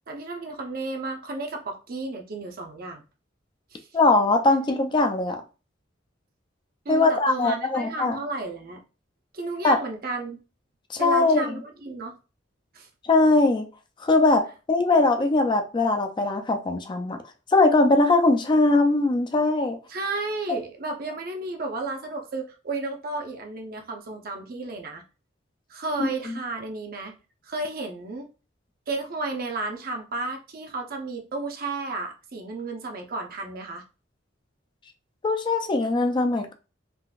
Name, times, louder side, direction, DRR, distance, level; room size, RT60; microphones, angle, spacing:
voice 1, 0.1-3.0 3.7-3.9 6.8-8.8 9.3-10.4 11.0-12.2 12.7-12.9 19.9-25.0 25.7-27.1 27.4-28.3 28.9-33.8, right 3 dB, 50° right, 0.7 m, -33 dB
voice 2, 3.9-5.4 6.9-8.2 9.6-9.8 10.9-11.6 13.0-13.7 14.0-17.2 17.5-19.8 26.0-26.1 35.2-36.5, left 2 dB, 25° left, 0.4 m, -21 dB
3.8 x 2.5 x 2.3 m
head